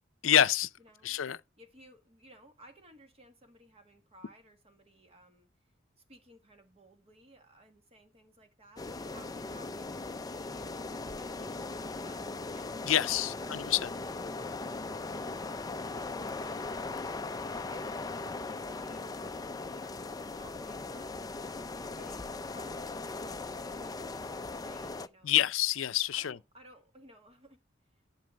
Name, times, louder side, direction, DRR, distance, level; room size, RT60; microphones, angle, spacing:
voice 1, 0.2-0.7 1.0-1.4 12.9-13.9 25.2-26.4, left 11 dB, 80° left, 0.5 m, -27 dB
voice 2, 0.8-1.2 1.6-5.5 6.0-13.6 17.5-19.1 19.6-21.3 21.9-25.4 26.1-27.6 27.9-28.0, equal, 30° right, 1.7 m, -58 dB
sound 1, 8.8-25.1, left 3 dB, 20° left, 0.4 m, -39 dB
11.0 x 4.7 x 5.2 m
head